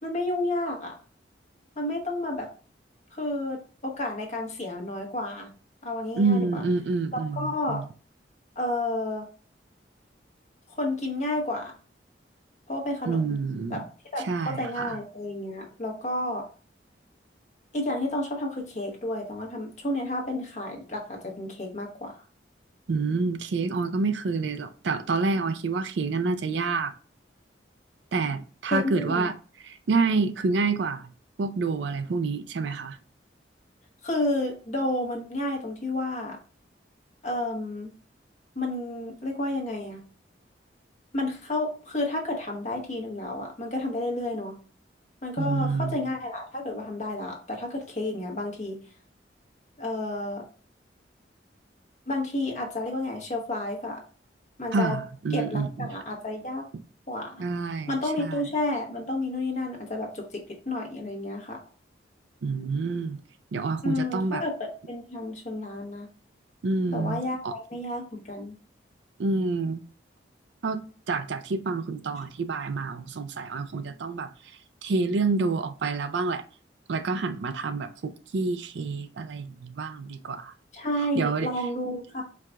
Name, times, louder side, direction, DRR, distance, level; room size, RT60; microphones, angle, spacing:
voice 1, 0.0-1.0 1.8-2.5 3.1-5.5 5.8-6.6 7.1-7.8 8.6-9.3 10.7-11.8 12.7-13.4 13.7-13.8 14.1-16.4 17.7-22.1 28.7-29.3 34.0-36.4 37.2-37.9 38.5-40.0 41.1-44.6 45.2-48.8 49.8-50.4 52.1-54.0 54.6-55.0 55.3-56.7 57.1-57.4 57.9-61.6 63.8-66.1 66.9-68.5 80.7-82.2, left 1 dB, 40° left, 1.1 m, -31 dB
voice 2, 6.2-7.8 13.1-13.8 14.3-15.0 22.9-26.9 28.1-29.3 29.6-31.0 31.4-33.0 45.4-46.0 54.7-55.9 57.4-57.9 58.2-58.4 62.4-63.2 63.5-64.4 66.6-67.5 69.2-69.8 70.6-70.8 71.1-74.3 74.8-76.4 76.9-80.5 81.1-81.5, right 4 dB, 75° right, 0.4 m, -28 dB
4.6 x 2.4 x 3.4 m
head